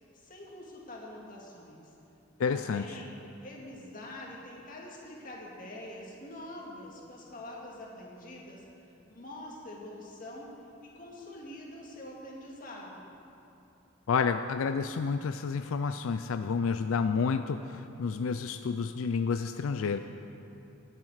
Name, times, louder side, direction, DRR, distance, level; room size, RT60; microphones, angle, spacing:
voice 1, 0.0-1.9 2.4-10.5 10.8-13.0, left 1 dB, 40° left, -3 dB, 2.2 m, -45 dB
voice 2, 2.4-2.9 14.1-20.0, left 5 dB, 90° left, 9 dB, 0.4 m, -30 dB
20.5 x 7.5 x 4.9 m, 2.8 s
head